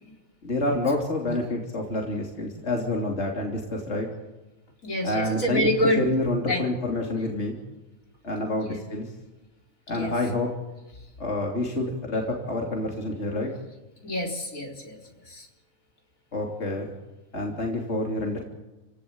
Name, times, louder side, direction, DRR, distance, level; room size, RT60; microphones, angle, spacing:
voice 1, 0.4-4.1 5.0-5.6 6.0-7.6 8.2-9.1 9.9-10.5 11.2-13.5 16.3-16.9 17.3-18.4, left 2 dB, 55° left, 0 dB, 3.5 m, -28 dB
voice 2, 4.8-6.1 6.5-6.7 8.6-8.8 9.9-10.1 11.0-11.1 14.0-15.0 15.2-15.5, equal, 70° left, 1 dB, 4.7 m, -27 dB
29.5 x 17.0 x 8.7 m, 1.1 s
omnidirectional pair, 1.5 m